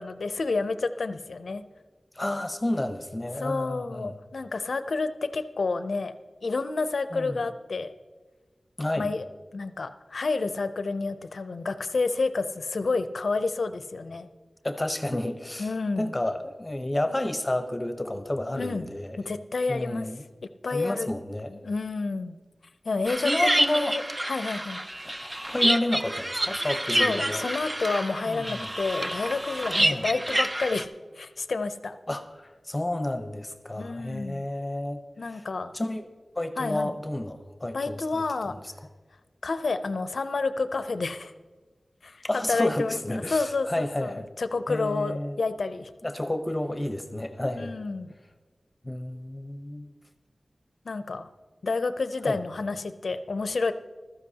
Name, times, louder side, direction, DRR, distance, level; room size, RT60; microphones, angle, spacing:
voice 1, 0.0-1.6 3.4-6.1 6.4-7.9 9.0-9.3 9.5-14.3 15.6-16.1 18.6-18.9 19.2-20.1 20.6-21.1 21.5-22.4 22.8-24.0 24.3-24.8 26.9-32.0 33.8-34.5 35.2-35.7 36.6-36.9 37.7-38.6 39.4-41.3 42.0-42.2 42.5-45.9 47.6-48.1 50.9-51.3 51.6-53.7, left 3 dB, 85° left, 11 dB, 0.5 m, -29 dB
voice 2, 2.2-4.2 7.1-7.4 8.8-9.1 14.6-15.7 16.0-19.2 19.7-20.2 20.7-21.5 23.2-23.9 25.2-27.4 28.3-28.7 29.8-30.0 32.1-35.0 35.3-35.4 35.7-36.1 36.4-38.6 42.2-44.3 44.7-45.4 46.0-47.8 48.8-49.9 52.3-52.4, left 1 dB, 25° left, 8 dB, 0.9 m, -30 dB
sound 1, 23.1-30.8, right 1 dB, 25° right, 0.5 m, -28 dB
15.0 x 13.0 x 2.8 m, 1.4 s
wide cardioid pair, 55°, 0 cm